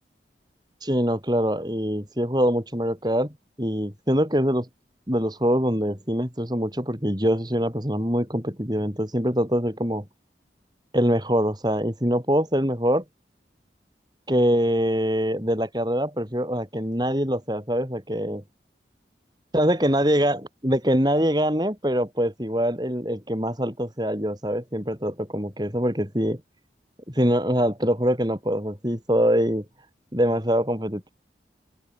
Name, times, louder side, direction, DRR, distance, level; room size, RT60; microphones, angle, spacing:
voice 1, 0.8-3.3 3.6-4.7 5.1-10.0 10.9-13.0 14.3-18.4 19.5-26.4 27.1-29.6 30.1-31.1, equal, 25° right, 6.4 m, -24 dB
open air
head